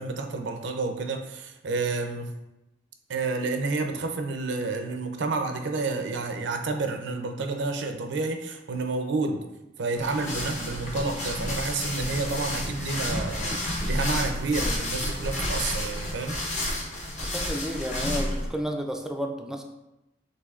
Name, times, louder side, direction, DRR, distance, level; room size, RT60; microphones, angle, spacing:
voice 1, 0.0-2.4 3.1-9.4 9.8-13.6 13.9-16.4, right 3 dB, 70° right, 6 dB, 0.5 m, -30 dB
sound 1, 9.9-18.5, left 1 dB, 40° left, 0.9 m, -30 dB
voice 2, 17.2-19.6, equal, 5° right, 3 dB, 0.3 m, -31 dB
6.5 x 2.7 x 2.4 m, 0.94 s
head